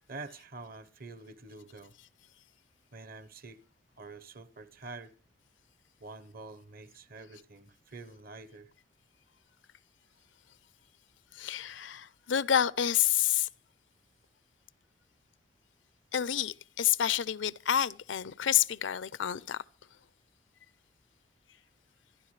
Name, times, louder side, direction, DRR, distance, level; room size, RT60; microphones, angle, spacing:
voice 1, 0.1-1.9 2.9-3.6 4.0-5.1 6.0-8.7, right 3 dB, 55° right, 1.0 m, -47 dB
voice 2, 11.4-13.5 16.1-19.6, left 10 dB, 90° left, 0.6 m, -28 dB
26.0 x 10.5 x 3.2 m
head